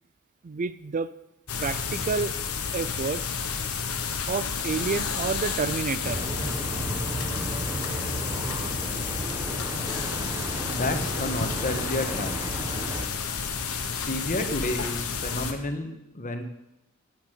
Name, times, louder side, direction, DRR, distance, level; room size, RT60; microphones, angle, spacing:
voice 1, 0.4-1.1 1.6-2.3 2.7-3.4 4.3-6.3, right 5 dB, 35° right, 15 dB, 0.4 m, -29 dB
sound 1, 1.5-15.5, left 6 dB, 85° left, 1.4 m, -31 dB
sound 2, 6.0-13.1, right 1 dB, 15° right, 1.1 m, -34 dB
voice 2, 10.7-12.4 13.9-16.4, left 2 dB, 40° left, 6 dB, 1.6 m, -31 dB
10.0 x 8.9 x 9.2 m, 0.90 s
head